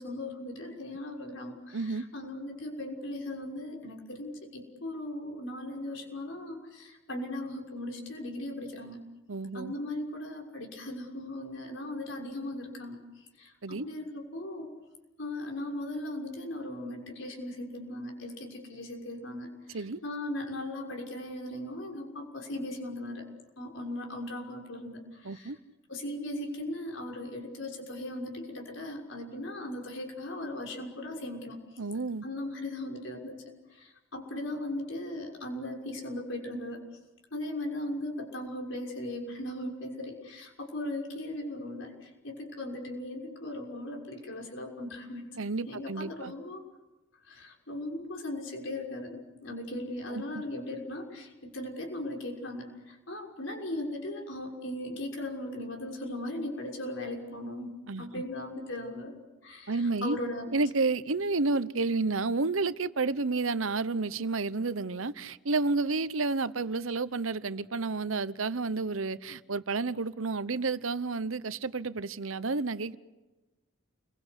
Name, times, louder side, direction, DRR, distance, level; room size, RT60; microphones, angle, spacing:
voice 1, 0.0-9.0 9.5-13.0 13.4-14.7 15.2-23.2 23.6-25.5 25.9-31.6 32.2-33.4 33.7-36.8 37.3-45.2 45.7-46.6 47.3-57.7 58.0-59.1 59.4-60.6, left 1 dB, 65° left, 6.3 m, -38 dB
voice 2, 1.7-2.0 9.3-9.7 13.6-13.9 19.7-20.0 25.2-25.6 31.8-32.2 45.4-46.3 50.1-50.4 57.9-58.2 59.7-60.2 60.5-73.0, right 3 dB, 80° right, 1.0 m, -30 dB
29.5 x 23.0 x 8.2 m
head